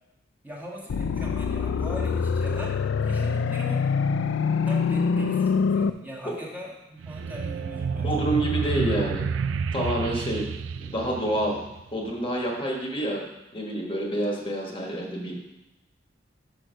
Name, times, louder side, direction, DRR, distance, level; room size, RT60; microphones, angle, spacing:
voice 1, 0.4-3.9 4.6-8.3, equal, 10° right, -5 dB, 1.4 m, -39 dB
sound 1, 0.9-5.9, left 5 dB, 85° left, 0.4 m, -25 dB
sound 2, 7.0-12.0, right 6 dB, 75° right, 0.3 m, -30 dB
voice 2, 8.0-9.3 9.7-10.5 10.8-11.6 11.9-13.2 13.5-15.3, right 1 dB, 30° left, -1 dB, 1.3 m, -28 dB
6.2 x 6.2 x 5.1 m, 0.93 s
head